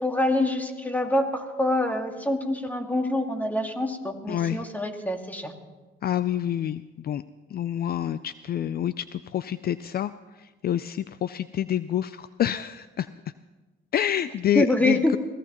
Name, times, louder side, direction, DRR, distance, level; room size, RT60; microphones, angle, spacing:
voice 1, 0.0-5.5 14.5-15.1, left 1 dB, 10° left, 4 dB, 1.9 m, -25 dB
voice 2, 4.3-4.6 6.0-7.2 7.5-10.1 10.4-13.1 13.9-15.2, left 10 dB, 50° left, 14 dB, 0.4 m, -27 dB
24.5 x 16.5 x 3.0 m, 1.2 s
cardioid pair, 90°, 20 cm